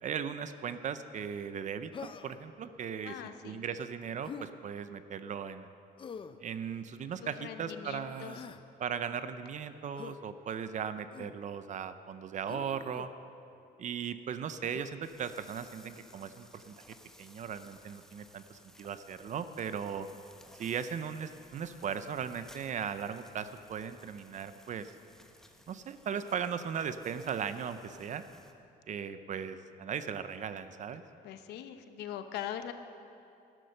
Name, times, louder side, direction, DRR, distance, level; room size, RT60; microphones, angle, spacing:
voice 1, 0.0-3.1 3.4-5.7 6.4-8.4 8.8-13.1 13.8-16.7 17.2-20.1 20.6-24.9 25.7-28.2 28.9-31.0, right 7 dB, 45° right, 11 dB, 0.7 m, -38 dB
Human voice, 1.9-2.5 4.2-4.5 6.0-6.4 8.0-8.6 10.0-10.2 11.1-11.4 12.5-13.1 14.7-15.0, left 6 dB, 30° left, 0.6 m, -45 dB
voice 2, 3.0-3.6 7.2-8.5 31.2-32.7, left 10 dB, 80° left, 9 dB, 0.9 m, -42 dB
sound 1, 15.0-28.5, left 1 dB, 5° left, 1.0 m, -59 dB
12.5 x 12.5 x 6.5 m, 2.7 s
cardioid pair, 110°, 17 cm